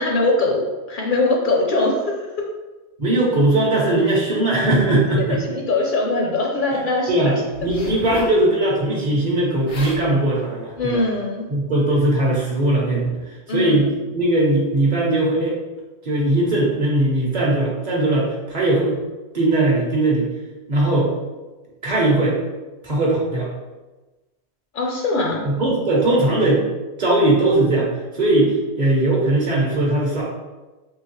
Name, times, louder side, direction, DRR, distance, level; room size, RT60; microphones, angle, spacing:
voice 1, 0.0-2.0 5.1-7.3 10.8-11.5 13.5-13.8 24.7-25.4, left 2 dB, 60° left, -1 dB, 0.6 m, -21 dB
voice 2, 3.0-5.4 7.1-11.0 11.5-13.2 13.5-15.6 16.0-19.0 19.3-20.3 20.7-21.1 21.8-22.4 22.8-23.5 25.4-26.6 27.0-30.2, right 2 dB, 45° right, -3 dB, 0.7 m, -19 dB
Zipper (clothing), 7.5-8.4 9.4-9.5 9.7-10.0 10.8-11.0, left 2 dB, 80° left, 1.1 m, -33 dB
3.7 x 2.7 x 3.0 m, 1.2 s
omnidirectional pair, 1.1 m